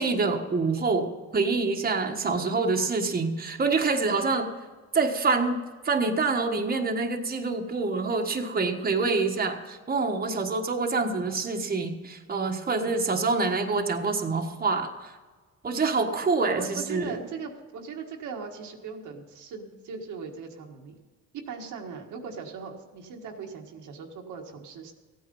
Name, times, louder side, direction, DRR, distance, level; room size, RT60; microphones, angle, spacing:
voice 1, 0.0-4.5 4.9-5.6 5.8-15.2 15.6-17.2, right 4 dB, 30° right, 3 dB, 1.4 m, -26 dB
voice 2, 16.5-21.0 21.4-24.9, right 5 dB, 85° right, 1 dB, 1.7 m, -39 dB
14.5 x 9.3 x 5.4 m, 1.4 s
cardioid pair, 90°, 30 cm